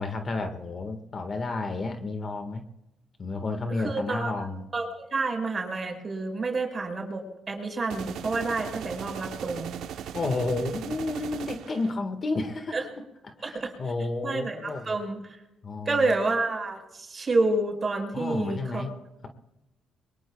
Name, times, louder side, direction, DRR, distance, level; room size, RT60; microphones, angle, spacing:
voice 1, 0.0-2.6 3.2-4.6 10.1-12.8 13.2-14.9 15.6-16.1 18.1-18.9, left 3 dB, 40° left, 6 dB, 1.6 m, -31 dB
voice 2, 3.8-4.3 4.7-9.8 12.7-12.8 13.4-13.7 14.2-15.2 15.8-18.8, right 3 dB, 35° right, 2 dB, 5.1 m, -29 dB
sound 1, 7.9-11.9, right 9 dB, 85° right, 0.9 m, -38 dB
23.0 x 20.5 x 2.3 m, 0.94 s
cardioid pair, 90°, 0 cm